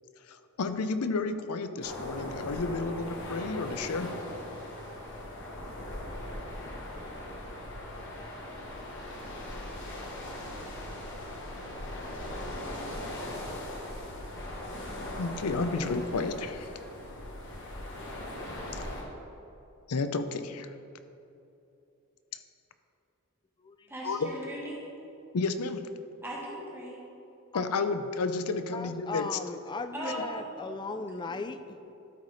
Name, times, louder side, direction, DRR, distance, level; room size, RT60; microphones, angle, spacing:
voice 1, 0.3-4.1 15.2-16.7 18.7-18.9 19.9-20.7 24.0-24.3 25.3-25.8 27.5-29.4, left 3 dB, 85° left, 10 dB, 0.5 m, -31 dB
sound 1, 1.8-19.0, left 1 dB, 55° left, 1.4 m, -39 dB
voice 2, 23.9-24.8 26.2-27.0 29.9-30.4 30.9-31.0 31.4-31.5, right 1 dB, 10° right, -4 dB, 1.2 m, -38 dB
voice 3, 27.5-28.0 28.7-31.9, left 3 dB, 20° left, 9 dB, 0.3 m, -38 dB
12.5 x 4.9 x 4.1 m, 2.8 s
head